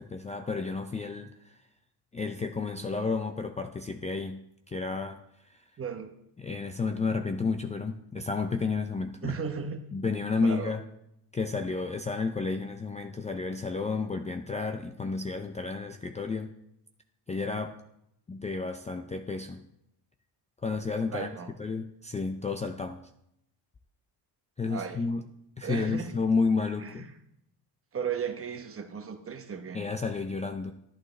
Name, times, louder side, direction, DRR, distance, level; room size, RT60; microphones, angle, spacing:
voice 1, 0.0-1.6 2.1-5.6 6.4-9.4 9.9-10.8 11.3-16.5 17.3-17.8 18.3-19.7 20.6-21.3 21.6-23.1 24.6-25.3 25.6-27.1 29.7-30.7, left 4 dB, 15° left, 6 dB, 0.4 m, -31 dB
voice 2, 5.8-6.1 9.2-9.8 10.4-10.7 21.1-21.5 24.7-25.0 25.6-26.1 26.8-27.0 27.9-29.9, right 6 dB, 30° right, 7 dB, 1.0 m, -35 dB
11.5 x 11.0 x 3.2 m, 0.78 s
cardioid pair, 140°, 42 cm